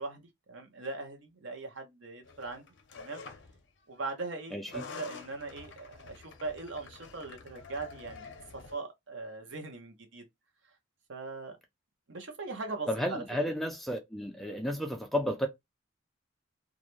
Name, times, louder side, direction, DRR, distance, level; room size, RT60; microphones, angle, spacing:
voice 1, 0.0-2.7 2.9-3.2 3.9-10.2 11.1-11.6 12.1-13.2, right 3 dB, 75° right, 0.7 m, -40 dB
sound 1, 2.2-3.6 4.5-8.8, left 4 dB, 65° left, 0.5 m, -48 dB
voice 2, 4.5-4.8 12.9-15.5, equal, ahead, 0.3 m, -32 dB
2.4 x 2.1 x 3.0 m
head